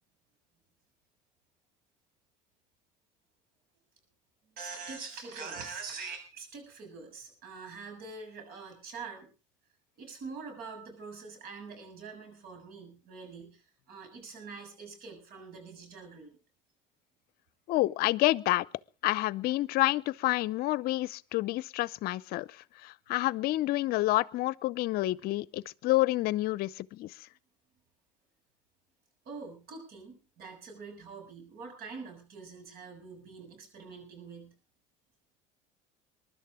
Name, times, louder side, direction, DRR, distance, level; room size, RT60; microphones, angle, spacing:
voice 1, 4.6-9.3 10.0-16.4 29.3-34.5, right 4 dB, 60° right, 7.1 m, -44 dB
voice 2, 17.7-18.7 19.0-22.5 22.8-27.1, left 18 dB, 60° left, 0.6 m, -28 dB
22.5 x 12.0 x 3.6 m
supercardioid pair, 85°, 17 cm